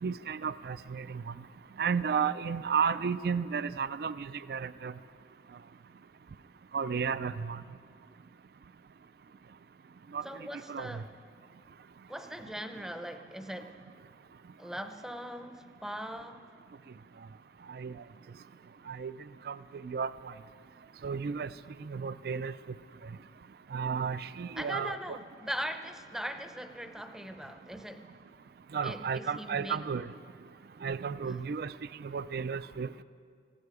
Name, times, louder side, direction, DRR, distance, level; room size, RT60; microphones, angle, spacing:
voice 1, 0.0-1.3 1.8-4.9 6.7-7.6 10.1-10.2 10.7-11.0 17.7-17.9 18.9-19.1 19.5-19.6 19.8-20.3 21.0-21.5 21.8-22.5 23.7-25.2 28.7-30.1 30.8-31.7 32.0-33.0, right 6 dB, 60° right, 15 dB, 0.3 m, -33 dB
voice 2, 10.2-11.1 12.1-13.8 14.6-16.4 24.6-28.1 28.8-29.8 31.3-31.4, equal, 5° right, 7 dB, 0.6 m, -40 dB
19.0 x 15.0 x 4.8 m, 2.2 s
head